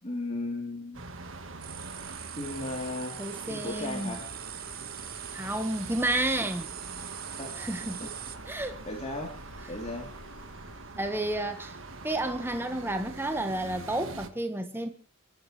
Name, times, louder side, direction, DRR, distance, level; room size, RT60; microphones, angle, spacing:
voice 1, 0.0-1.0 2.4-3.2 3.5-4.3 7.4-7.5 8.0-8.1 8.9-9.3 9.7-10.1, left 2 dB, 30° left, 3.2 m, -35 dB
sound 1, 0.9-14.3, right 3 dB, 65° right, 1.6 m, -44 dB
sound 2, 1.6-8.4, right 10 dB, 45° right, 1.3 m, -42 dB
voice 2, 3.2-4.2 5.3-6.7 7.6-8.1 8.5-8.8 11.0-11.8 12.0-14.9, right 1 dB, 10° right, 1.4 m, -31 dB
Engine, 3.3-10.9, left 1 dB, 60° left, 6.0 m, -53 dB
29.0 x 13.0 x 3.2 m
head